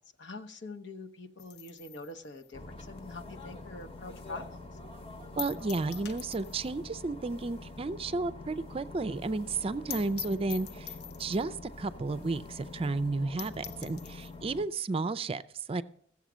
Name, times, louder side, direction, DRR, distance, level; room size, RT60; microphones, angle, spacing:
voice 1, 0.2-4.6, left 2 dB, 80° left, 7 dB, 1.0 m, -44 dB
sound 1, 1.4-4.0 4.4-4.5 4.8-4.9 5.4-6.8 7.1-7.2 7.5-7.6 8.0-8.1 8.3-8.4 8.7-8.8 9.1-9.2 9.5-9.6 9.9-11.5 12.2-12.3 12.7-12.8 13.1-13.2 13.4-14.4, left 9 dB, 65° left, 0.6 m, -44 dB
sound 2, 2.5-14.6, left 2 dB, 35° left, 1.0 m, -46 dB
voice 2, 5.4-10.9 11.2-15.4 15.7-15.8, right 3 dB, 30° right, 15 dB, 0.4 m, -32 dB
15.0 x 7.3 x 6.1 m, 0.65 s
head